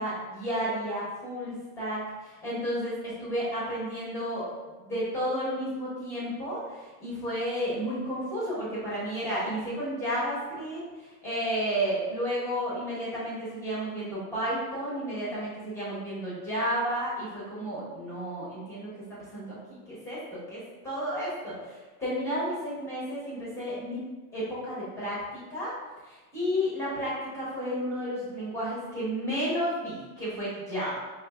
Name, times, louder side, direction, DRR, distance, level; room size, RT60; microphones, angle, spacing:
voice 1, 0.0-4.5 4.8-18.9 19.3-24.0 24.3-25.7 26.1-30.9, equal, 5° left, -8 dB, 0.8 m, -32 dB
5.1 x 2.5 x 2.3 m, 1.2 s
supercardioid pair, 165°, 46 cm